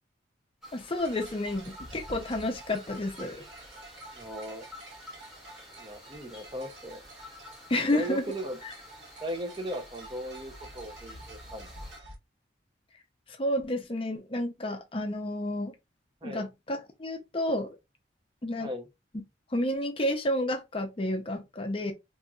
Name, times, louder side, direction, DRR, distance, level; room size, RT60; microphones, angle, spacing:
sound 1, 0.6-12.0, left 1 dB, 5° right, 1.8 m, -51 dB
voice 1, 0.7-3.5 7.7-8.2 13.3-15.7 16.2-17.8 18.4-18.7 19.5-21.9, left 1 dB, 30° left, 0.5 m, -30 dB
sound 2, 1.0-12.2, right 2 dB, 70° right, 1.3 m, -49 dB
voice 2, 4.1-4.6 5.8-7.0 7.9-8.6 9.2-11.7 16.2-16.5 18.6-18.9, equal, 25° right, 0.6 m, -37 dB
4.1 x 3.0 x 2.3 m
head